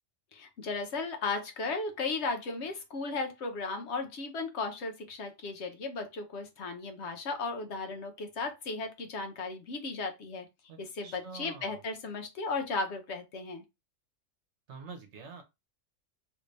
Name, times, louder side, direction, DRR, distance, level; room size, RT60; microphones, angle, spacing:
voice 1, 0.3-10.5 10.8-13.6, left 3 dB, 65° left, 0.9 m, -35 dB
voice 2, 10.7-11.8 14.7-15.4, right 5 dB, 60° right, 1.1 m, -46 dB
3.2 x 2.6 x 3.2 m
omnidirectional pair, 1.4 m